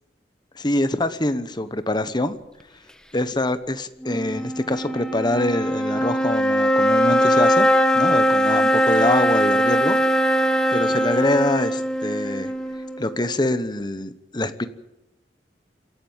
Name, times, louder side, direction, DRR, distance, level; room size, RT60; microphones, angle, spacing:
voice 1, 0.5-2.4 3.1-7.7 7.9-10.0 10.7-12.5 13.0-14.7, left 1 dB, 25° left, 11 dB, 1.1 m, -24 dB
sound 1, 4.0-13.4, equal, 5° left, 1.4 m, -21 dB
27.5 x 12.0 x 8.8 m, 0.92 s
head